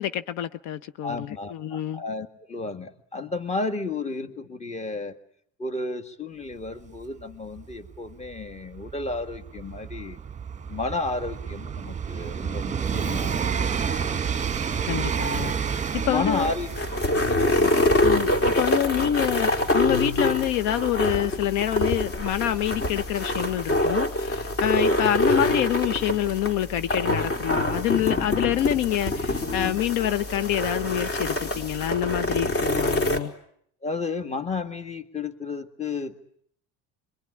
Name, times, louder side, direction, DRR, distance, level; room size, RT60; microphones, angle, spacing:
voice 1, 0.0-2.0 14.8-16.5 18.0-33.3, left 12 dB, 75° left, 1.2 m, -27 dB
voice 2, 1.0-5.2 5.6-10.2 10.7-13.7 16.0-16.7 17.2-17.8 33.8-36.2, left 3 dB, 20° left, 1.9 m, -32 dB
Train, 6.7-6.8 6.9-23.6 24.5-24.6, right 7 dB, 20° right, 1.3 m, -31 dB
sound 1, 16.1-33.2, left 1 dB, 40° left, 4.4 m, -25 dB
26.0 x 23.0 x 9.9 m
cardioid pair, 130°, 33 cm